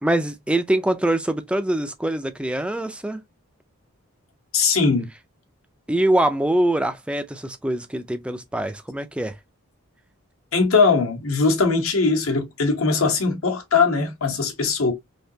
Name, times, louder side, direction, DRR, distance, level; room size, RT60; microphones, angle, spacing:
voice 1, 0.0-3.2 5.9-9.3, right 1 dB, 5° right, 0.3 m, -23 dB
voice 2, 4.5-5.1 10.5-14.9, left 4 dB, 70° left, 1.1 m, -20 dB
3.5 x 2.8 x 2.7 m
head